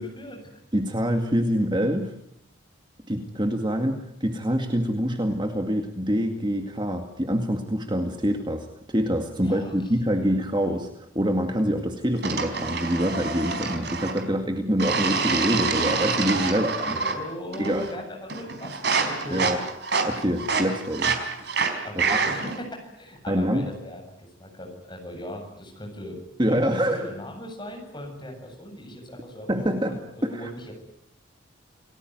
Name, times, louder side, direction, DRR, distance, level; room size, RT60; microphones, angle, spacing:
voice 1, 0.0-0.6 9.4-9.7 10.1-10.3 16.4-16.6 16.9-19.5 21.8-24.0 24.4-26.2 26.5-30.7, equal, 20° left, 3 dB, 7.8 m, -39 dB
voice 2, 0.7-2.1 3.1-17.0 17.6-17.8 19.3-19.6 20.0-21.2 22.0-22.2 23.3-23.7 26.4-27.1 29.5-30.5, equal, 25° right, 5 dB, 2.1 m, -25 dB
sound 1, 12.2-14.3 14.8-17.2 17.5-18.0 18.3-22.6, right 4 dB, 55° right, 4.5 m, -27 dB
29.0 x 19.5 x 9.5 m, 0.76 s
head